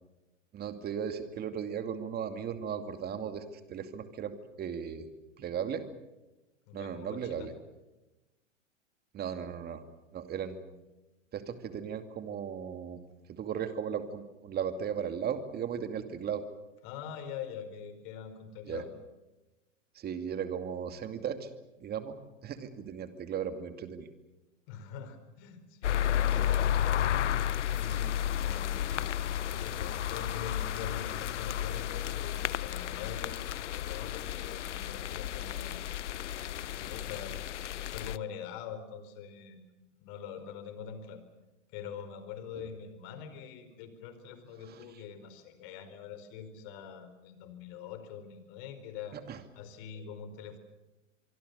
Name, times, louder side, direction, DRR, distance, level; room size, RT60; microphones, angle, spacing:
voice 1, 0.5-5.1 5.4-5.8 6.7-7.5 9.1-9.8 10.1-10.8 11.3-13.0 13.3-16.4 18.7-18.8 19.9-21.5 21.8-22.2 22.4-24.1 26.4-26.5 28.9-29.1 44.6-44.8 49.3-49.4, right 8 dB, 25° right, 9 dB, 2.5 m, -36 dB
voice 2, 6.7-7.5 16.8-18.9 24.7-27.2 27.8-29.0 29.4-35.8 36.6-37.4 37.7-39.7 40.0-41.2 41.7-49.2 49.6-50.6, left 7 dB, 45° left, 10 dB, 4.8 m, -44 dB
sound 1, 25.8-38.2, left 11 dB, 70° left, 0.8 m, -32 dB
25.0 x 24.5 x 6.8 m, 1.1 s
figure-of-eight pair, 105°, 37 cm